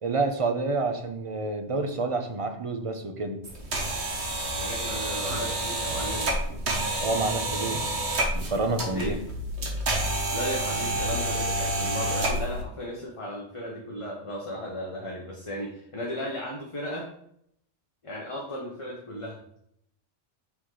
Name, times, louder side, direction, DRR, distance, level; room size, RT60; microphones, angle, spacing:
voice 1, 0.0-3.4 7.0-7.9 8.3-9.2, right 3 dB, 35° right, 6 dB, 0.7 m, -28 dB
sound 1, 3.4-12.6, right 1 dB, 75° right, 1.5 m, -29 dB
voice 2, 4.5-6.3 8.9-9.2 10.3-17.1 18.0-19.4, equal, 30° left, -2 dB, 1.0 m, -35 dB
6.0 x 4.2 x 4.8 m, 0.71 s
omnidirectional pair, 1.1 m